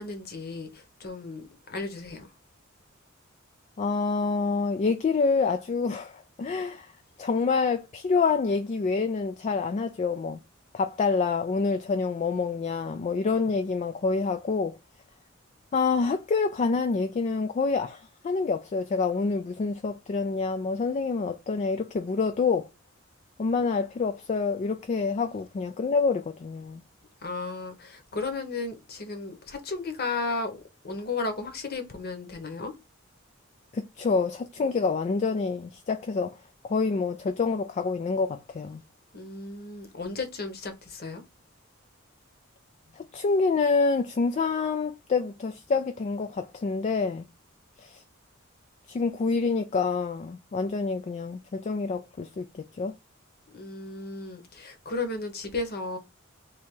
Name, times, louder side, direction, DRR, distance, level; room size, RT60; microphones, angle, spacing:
voice 1, 0.0-2.3 27.2-30.6 30.8-32.7 39.1-41.2 53.5-56.0, left 3 dB, 50° left, 1.0 m, -34 dB
voice 2, 3.8-6.9 7.2-10.4 10.7-14.8 15.7-22.7 23.4-26.8 33.7-36.4 36.6-38.8 43.0-47.3 47.8-48.0 48.9-53.0, left 4 dB, 35° left, 0.3 m, -27 dB
3.4 x 2.9 x 4.4 m
head